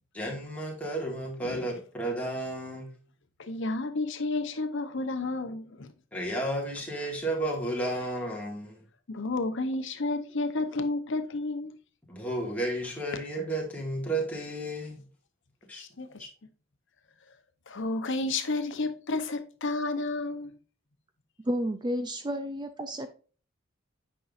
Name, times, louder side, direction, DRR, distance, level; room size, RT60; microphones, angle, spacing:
voice 1, 0.1-2.9 6.1-8.8 12.1-15.0 15.7-15.8, right 1 dB, 5° left, 2.0 m, -32 dB
voice 2, 3.4-5.9 9.1-11.8 15.7-16.3 17.7-20.5, left 2 dB, 65° left, 0.9 m, -31 dB
voice 3, 21.5-23.1, equal, 20° right, 0.5 m, -31 dB
8.4 x 5.6 x 2.6 m
head